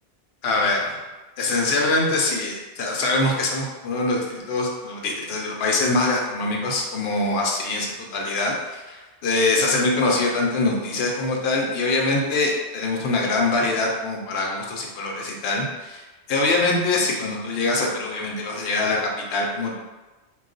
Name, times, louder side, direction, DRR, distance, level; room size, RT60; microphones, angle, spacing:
voice 1, 0.4-1.0 1.4-16.0 16.3-19.8, left 2 dB, 70° left, -1 dB, 0.8 m, -23 dB
2.3 x 2.3 x 3.7 m, 1.2 s
omnidirectional pair, 1.1 m